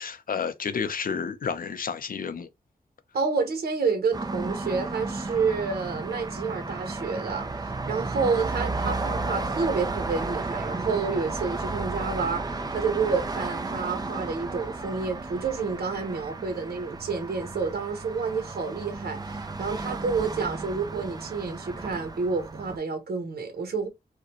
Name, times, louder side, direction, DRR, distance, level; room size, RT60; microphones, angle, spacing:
voice 1, 0.0-2.5, left 6 dB, 65° left, 0.5 m, -31 dB
voice 2, 3.1-23.9, right 4 dB, 85° right, 0.9 m, -29 dB
sound 1, 4.1-22.8, right 3 dB, 25° right, 0.5 m, -33 dB
4.8 x 2.2 x 2.9 m
wide cardioid pair, 115°, 16 cm